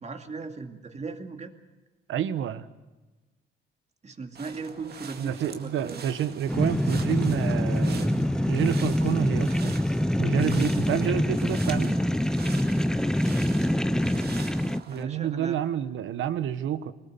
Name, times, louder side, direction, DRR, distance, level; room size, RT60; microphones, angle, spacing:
voice 1, 0.0-1.5 4.0-6.0 13.6-15.6, right 4 dB, 35° right, 5 dB, 2.4 m, -39 dB
voice 2, 2.1-2.7 5.2-9.7 10.2-12.0 14.9-16.9, right 10 dB, 75° right, 13 dB, 1.2 m, -29 dB
sound 1, 4.3-15.0, right 6 dB, 55° right, 2.1 m, -44 dB
sound 2, 6.5-14.8, left 1 dB, 5° left, 0.6 m, -25 dB
23.0 x 20.0 x 6.9 m, 1.2 s
cardioid pair, 90°, 20 cm